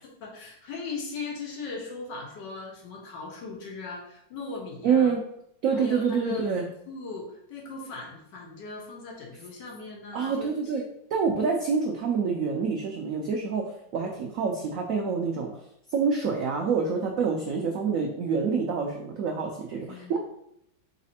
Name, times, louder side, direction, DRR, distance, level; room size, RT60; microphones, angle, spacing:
voice 1, 0.2-5.2 5.7-6.6 6.9-10.8 19.8-20.2, left 4 dB, 70° left, -1 dB, 1.6 m, -39 dB
voice 2, 4.8-5.2 5.6-6.6 10.1-10.8 11.1-15.5 15.9-20.2, right 5 dB, 90° right, 1 dB, 0.7 m, -27 dB
4.1 x 4.0 x 2.7 m, 0.75 s
omnidirectional pair, 2.0 m